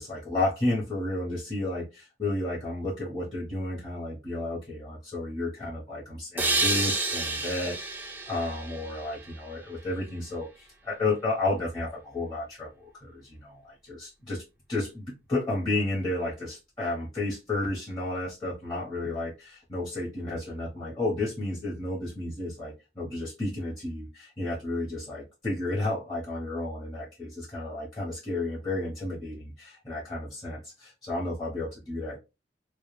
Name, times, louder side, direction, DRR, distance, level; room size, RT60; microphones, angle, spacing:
voice 1, 0.0-14.4 14.7-32.2, left 2 dB, 25° left, 0.8 m, -32 dB
sound 1, 6.4-9.9, right 3 dB, 10° right, 0.4 m, -30 dB
2.2 x 2.1 x 2.9 m
head